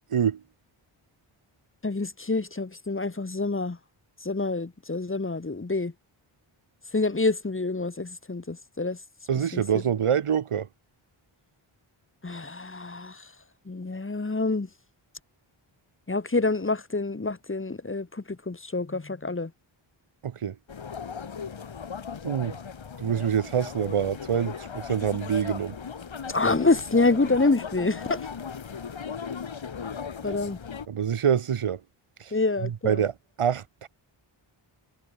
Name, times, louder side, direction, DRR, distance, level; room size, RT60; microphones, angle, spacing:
voice 1, 0.1-0.4 9.3-10.7 20.2-20.6 22.2-22.6 23.0-25.8 30.9-31.8 32.2-32.3 32.6-33.1 33.4-33.9, right 8 dB, 85° right, 1.9 m, -26 dB
voice 2, 1.8-3.8 4.2-5.9 6.9-9.0 9.5-9.6 12.2-13.3 13.7-14.7 16.1-19.5 26.3-28.3 30.2-30.6 32.3-33.0, left 3 dB, 25° left, 2.5 m, -27 dB
sound 1, 20.7-30.9, left 6 dB, 65° left, 3.4 m, -37 dB
wide cardioid pair, 145°, 50 cm